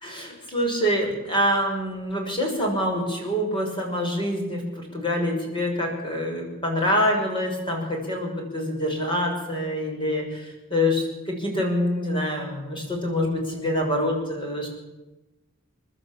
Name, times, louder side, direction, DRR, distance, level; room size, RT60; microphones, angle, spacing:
voice 1, 0.0-14.7, equal, 25° left, 1 dB, 6.1 m, -26 dB
29.0 x 12.0 x 8.4 m, 1.1 s
head